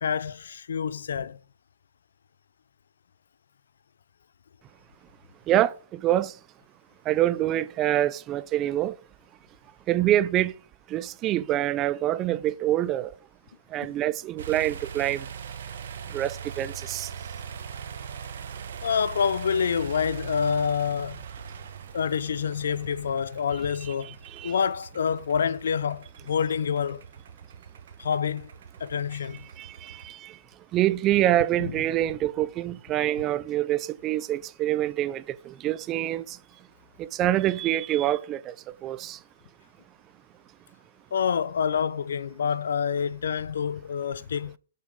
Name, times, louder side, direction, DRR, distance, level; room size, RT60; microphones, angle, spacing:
voice 1, 0.0-1.4 18.8-21.2 21.9-24.2 24.4-27.0 28.0-28.5 28.8-29.4 31.6-31.7 41.1-44.6, left 7 dB, 80° left, 0.6 m, -27 dB
voice 2, 5.5-6.4 7.1-8.9 9.9-10.5 10.9-13.1 13.7-15.3 16.1-17.1 23.5-24.6 29.6-30.4 30.7-36.4 37.0-38.6 38.8-39.2, right 13 dB, 25° right, 0.4 m, -26 dB
sound 1, 14.4-30.1, right 7 dB, 65° right, 1.5 m, -41 dB
18.5 x 6.7 x 3.6 m
hypercardioid pair, 155°, 0 cm